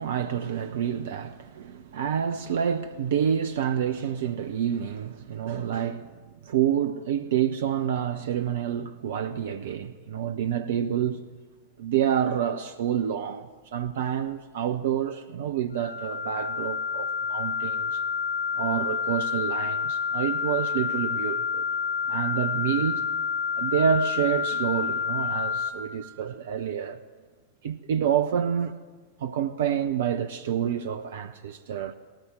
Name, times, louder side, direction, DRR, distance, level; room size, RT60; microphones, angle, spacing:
voice 1, 0.0-11.3 11.8-18.0 18.6-21.7 22.1-23.0 23.6-27.0 27.6-28.8 29.2-31.9, right 8 dB, 60° right, 0.7 m, -28 dB
sound 1, 15.7-25.7, left 6 dB, 85° right, 4.7 m, -29 dB
19.5 x 18.0 x 7.9 m
figure-of-eight pair, 90°, 0 cm